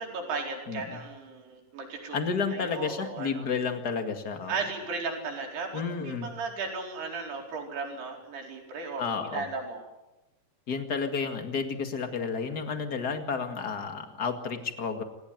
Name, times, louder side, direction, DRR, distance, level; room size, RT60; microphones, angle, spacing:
voice 1, 0.0-2.2 2.5-3.5 4.5-9.8, right 4 dB, 65° right, 1 dB, 6.4 m, -36 dB
voice 2, 0.7-1.0 2.1-4.6 5.7-6.3 9.0-9.4 10.7-15.0, left 5 dB, 40° left, 6 dB, 1.4 m, -31 dB
28.5 x 17.0 x 9.4 m, 0.98 s
omnidirectional pair, 5.0 m